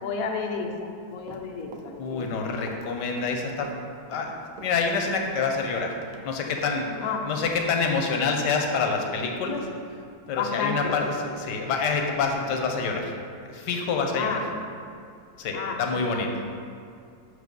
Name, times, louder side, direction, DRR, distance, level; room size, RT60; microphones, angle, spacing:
voice 1, 0.0-2.6 7.0-7.2 10.4-10.9 14.1-14.4 15.5-15.8, left 5 dB, 65° left, 1 dB, 1.1 m, -31 dB
Run, 1.1-6.2 6.6-6.7, right 3 dB, 65° right, 0.9 m, -45 dB
voice 2, 2.0-3.7 4.1-4.3 4.6-5.9 6.2-6.9 7.3-9.7 10.3-13.1 13.5-14.4 15.4-16.4, left 4 dB, 85° left, 2 dB, 1.4 m, -27 dB
6.6 x 5.0 x 5.2 m, 2.3 s
omnidirectional pair, 1.8 m